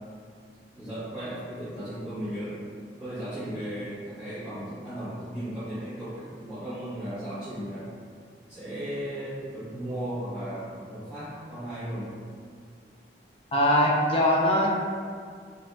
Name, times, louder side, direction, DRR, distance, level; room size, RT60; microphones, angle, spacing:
voice 1, 0.7-2.6 3.0-7.9 8.5-12.1, right 1 dB, 10° right, -19 dB, 1.2 m, -36 dB
voice 2, 13.5-14.7, left 1 dB, 30° left, -3 dB, 0.5 m, -21 dB
3.5 x 2.6 x 3.3 m, 2.1 s
head